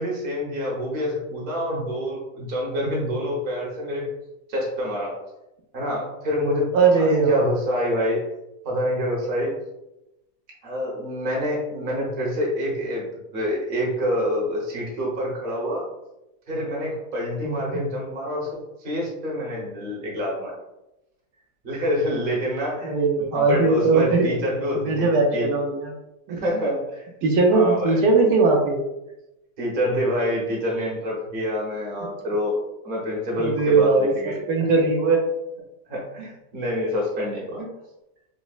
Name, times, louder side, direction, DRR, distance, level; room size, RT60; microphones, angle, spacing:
voice 1, 0.0-4.1 4.5-5.2 5.7-8.3 8.6-9.5 10.6-15.8 16.5-20.6 21.6-22.9 23.3-25.5 26.4-27.1 27.5-28.0 29.6-32.6 32.8-34.4 34.7-34.8 35.9-37.6, equal, 40° right, -3 dB, 1.0 m, -27 dB
voice 2, 6.7-7.5 17.4-17.8 22.8-24.3 24.7-25.9 26.3-26.4 27.2-28.8 33.3-34.1 34.5-35.2 36.2-36.3 37.6-37.7, right 3 dB, 80° right, 1 dB, 1.1 m, -20 dB
5.0 x 2.0 x 2.3 m, 0.91 s
omnidirectional pair, 1.7 m